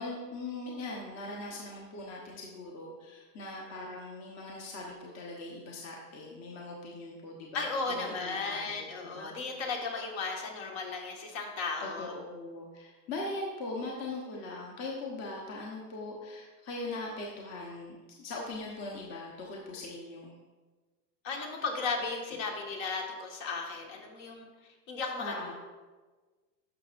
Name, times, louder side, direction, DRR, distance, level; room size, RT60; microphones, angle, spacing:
voice 1, 0.0-9.4 11.8-20.4 25.2-25.5, left 2 dB, 30° left, -2 dB, 1.1 m, -40 dB
voice 2, 7.5-12.1 21.2-24.5 24.9-25.5, left 4 dB, 55° left, 1 dB, 1.7 m, -35 dB
11.0 x 6.0 x 2.5 m, 1.3 s
supercardioid pair, 130°, 50 cm